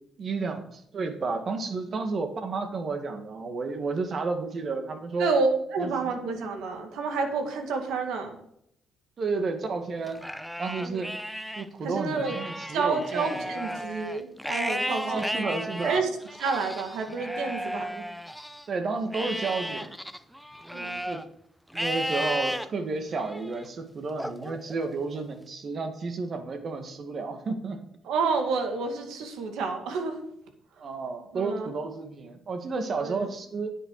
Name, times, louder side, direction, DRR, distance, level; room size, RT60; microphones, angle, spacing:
voice 1, 0.2-5.3 5.8-6.1 9.2-10.2 10.6-11.1 11.6-13.4 15.0-16.1 18.7-20.0 21.1-21.2 21.7-27.8 30.8-33.7, right 4 dB, 50° right, 7 dB, 1.9 m, -31 dB
voice 2, 5.2-8.4 10.8-11.0 11.8-12.4 12.7-15.3 15.8-16.1 16.4-18.0 20.7-21.0 28.0-30.2 31.3-31.7 33.0-33.3, right 4 dB, 85° right, 5 dB, 2.1 m, -29 dB
Livestock farm animals working animals, 10.1-11.7 12.1-18.7 19.1-21.2 21.7-22.7 23.2-23.6 24.2-25.3, equal, ahead, 0.7 m, -34 dB
9.9 x 8.9 x 4.8 m, 0.73 s
cardioid pair, 90°, 0 cm